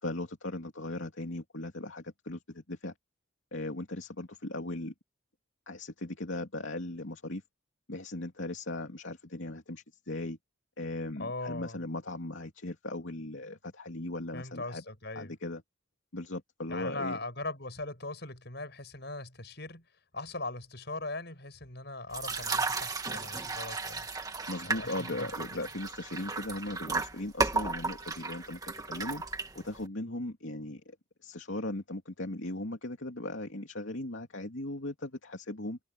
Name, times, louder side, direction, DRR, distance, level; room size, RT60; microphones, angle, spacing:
voice 1, 0.0-2.9 3.5-4.9 5.7-7.4 7.9-10.4 10.8-14.8 15.1-15.6 16.1-17.2 24.5-29.2 29.5-31.0 31.2-35.8, left 1 dB, 70° left, 2.8 m, -38 dB
voice 2, 11.2-11.8 14.3-15.3 16.7-19.9 20.1-24.1 24.6-25.7, left 2 dB, 55° left, 7.1 m, -40 dB
sound 1, 22.1-29.9, right 3 dB, 15° right, 1.8 m, -34 dB
head